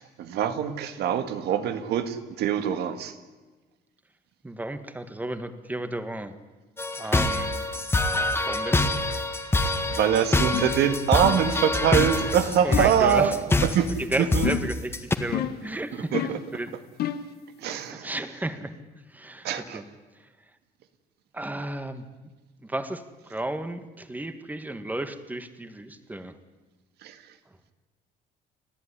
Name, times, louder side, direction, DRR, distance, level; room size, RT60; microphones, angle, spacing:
voice 1, 0.0-3.1 9.6-13.9 14.2-14.5 15.9-16.4 17.6-18.1 19.4-19.8 27.0-27.2, right 8 dB, 75° right, 9 dB, 1.9 m, -24 dB
voice 2, 4.4-6.3 7.0-7.5 8.5-8.8 12.6-13.3 14.0-16.8 17.6-18.7 19.1-19.8 21.3-22.0 22.6-26.4, right 1 dB, 10° right, 10 dB, 1.6 m, -33 dB
sound 1, 6.8-15.1, left 2 dB, 15° left, 1.9 m, -25 dB
sound 2, 10.5-10.8 11.2-11.6 12.0-12.2 12.7-13.0 14.4-14.8 15.3-15.7 16.1-16.5 17.0-17.3, left 10 dB, 70° left, 1.4 m, -30 dB
29.5 x 11.5 x 10.0 m, 1.3 s
cardioid pair, 110°, 17 cm